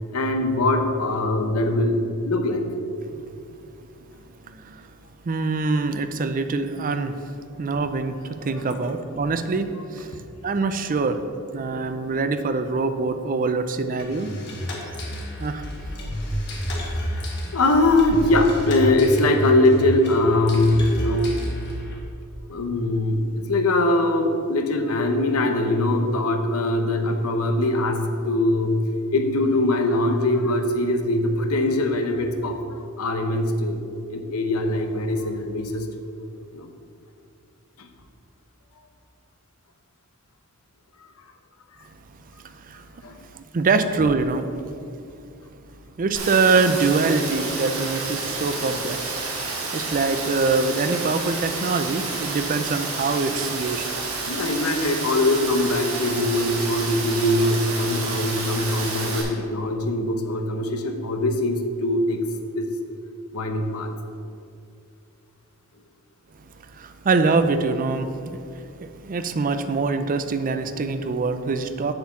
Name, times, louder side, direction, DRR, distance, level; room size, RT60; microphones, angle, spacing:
voice 1, 0.1-2.7 16.0-16.2 16.9-17.2 17.5-21.4 22.5-28.8 29.1-33.8 34.1-35.9 36.5-36.7 37.8-37.9 43.0-43.2 54.3-62.2 62.5-62.7 63.3-63.9, left 1 dB, 80° left, 5 dB, 0.9 m, -22 dB
voice 2, 3.1-3.5 4.0-4.9 5.2-7.3 7.6-11.3 11.5-14.3 15.4-15.6 42.4-44.5 45.7-49.2 49.7-53.9 66.4-71.9, right 4 dB, 40° right, 9 dB, 0.5 m, -24 dB
sound 1, 14.0-22.0, equal, 50° left, 1.8 m, -30 dB
Rain, 46.1-59.2, right 3 dB, 70° right, 1.8 m, -30 dB
7.7 x 4.5 x 7.1 m, 2.5 s
head